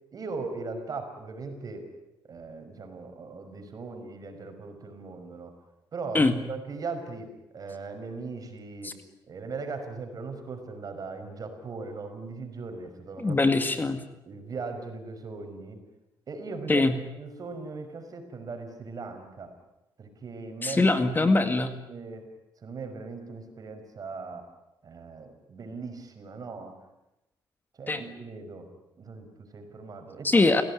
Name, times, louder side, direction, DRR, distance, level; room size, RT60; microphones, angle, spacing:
voice 1, 0.1-1.9 2.3-5.5 5.9-8.9 9.3-13.4 14.2-15.8 16.3-19.5 20.0-20.9 21.2-22.2 22.6-24.4 24.8-26.7 27.8-28.7 29.0-30.5, right 4 dB, 50° right, 6 dB, 5.6 m, -39 dB
voice 2, 13.2-14.0 16.7-17.0 20.6-21.7 27.9-28.0 30.2-30.6, left 3 dB, 25° left, 8 dB, 2.0 m, -22 dB
29.0 x 17.5 x 9.9 m, 0.94 s
cardioid pair, 105°, 8 cm